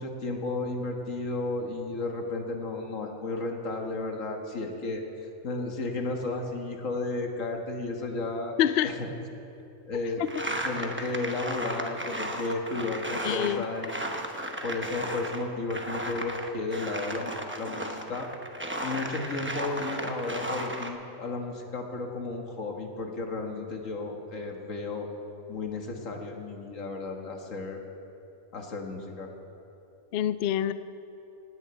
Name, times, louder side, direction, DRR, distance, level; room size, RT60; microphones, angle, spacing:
voice 1, 0.0-5.0 5.4-9.1 9.9-14.1 14.6-18.3 18.8-25.1 25.5-27.8 28.5-29.3, left 3 dB, 60° left, 2 dB, 1.8 m, -33 dB
voice 2, 8.6-8.9 13.2-13.6 30.1-30.7, left 11 dB, 80° left, 13 dB, 0.5 m, -25 dB
sound 1, 10.3-15.4 15.7-20.9, right 1 dB, 10° right, 0.7 m, -35 dB
18.0 x 6.8 x 8.9 m, 3.0 s
omnidirectional pair, 1.6 m